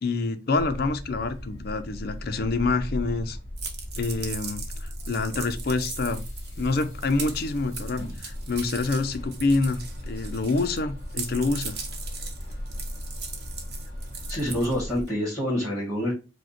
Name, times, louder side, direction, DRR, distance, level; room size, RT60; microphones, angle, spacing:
voice 1, 0.0-3.4 4.0-6.2 6.6-11.8, left 3 dB, 50° left, 0.5 m, -27 dB
sound 1, 0.5-15.0, equal, 35° left, 2.2 m, -37 dB
sound 2, 3.6-10.8 11.1-15.1, right 5 dB, 50° right, 0.8 m, -39 dB
voice 2, 14.3-16.1, equal, ahead, 1.9 m, -27 dB
5.0 x 2.1 x 4.3 m
head